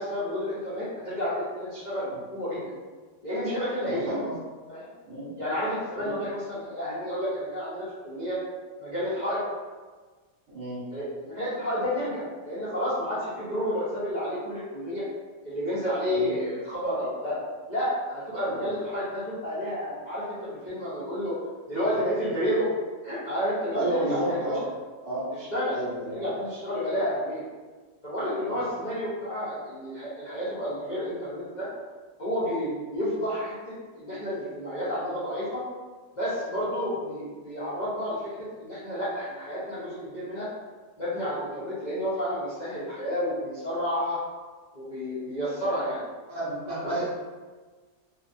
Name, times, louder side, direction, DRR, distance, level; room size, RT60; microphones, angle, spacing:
voice 1, 0.0-2.7 3.2-4.1 4.7-4.9 5.4-8.4 8.8-9.4 10.9-15.0 15.4-17.4 17.7-21.4 21.7-22.7 23.0-24.4 25.5-25.8 26.1-27.4 28.0-31.7 32.2-35.6 36.2-40.5 41.0-44.2 44.7-46.0 46.8-46.9, equal, 50° left, -12 dB, 0.5 m, -30 dB
voice 2, 3.8-4.3 5.0-5.3 6.0-6.2 10.5-10.8 16.1-16.3 18.5-18.6 23.7-24.6 25.0-25.3 25.7-26.3 28.5-28.6 46.3-47.1, right 1 dB, 55° right, -8 dB, 1.2 m, -31 dB
2.6 x 2.4 x 2.5 m, 1.4 s
omnidirectional pair, 1.6 m